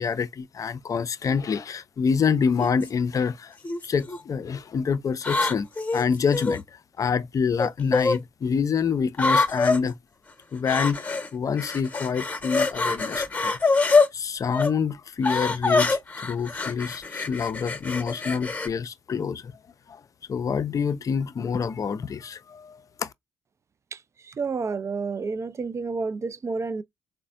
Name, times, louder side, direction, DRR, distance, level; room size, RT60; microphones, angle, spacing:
voice 1, 0.0-3.6 3.8-10.0 10.5-13.6 14.1-19.5 19.9-20.0 20.3-23.1, left 6 dB, 45° left, 0.4 m, -27 dB
sound 1, 2.6-2.9 3.6-4.2 5.2-6.6 7.6-8.2 9.1-9.8 10.7-11.3 11.6-14.1 14.5-14.7 15.2-18.7, left 3 dB, 20° left, 0.9 m, -24 dB
voice 2, 23.9-26.8, right 4 dB, 35° right, 0.4 m, -30 dB
3.9 x 2.1 x 2.5 m
hypercardioid pair, 45°, 8 cm